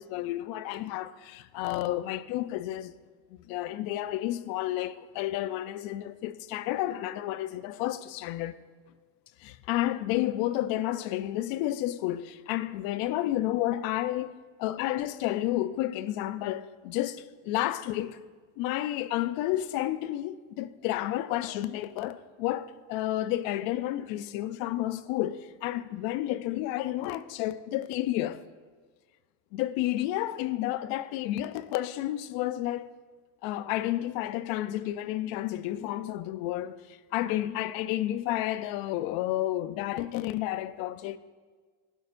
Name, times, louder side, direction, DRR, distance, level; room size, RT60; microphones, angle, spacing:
voice 1, 0.0-2.9 3.3-8.6 9.4-14.3 14.6-18.2 18.6-28.4 29.5-32.9 33.4-41.2, left 14 dB, 70° left, 0.5 m, -31 dB
11.5 x 11.0 x 2.5 m
cardioid pair, 130°, 37 cm